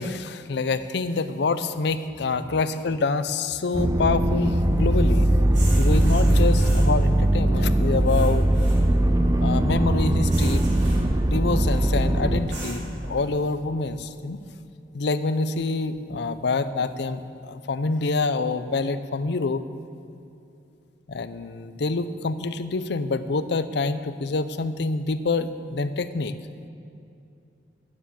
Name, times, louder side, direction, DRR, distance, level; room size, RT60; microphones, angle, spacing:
voice 1, 0.0-5.3 5.8-8.5 9.4-10.7 10.9-14.4 14.9-19.7 21.1-26.3, left 3 dB, 70° left, 12 dB, 0.5 m, -26 dB
sound 1, 3.7-12.4, right 1 dB, 20° right, 0.6 m, -20 dB
sound 2, 3.9-13.1, right 1 dB, 85° right, 3.0 m, -41 dB
10.0 x 9.6 x 7.0 m, 2.6 s
head